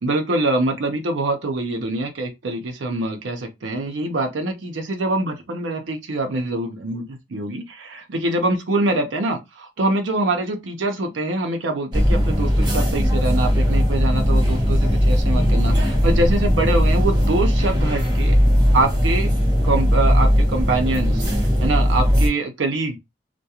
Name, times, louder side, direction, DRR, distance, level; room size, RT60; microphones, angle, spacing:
voice 1, 0.0-18.4 18.7-19.3 19.6-23.0, right 2 dB, 85° right, 0.5 m, -24 dB
sound 1, 11.9-22.3, equal, 25° right, 0.7 m, -18 dB
2.3 x 2.1 x 2.8 m
head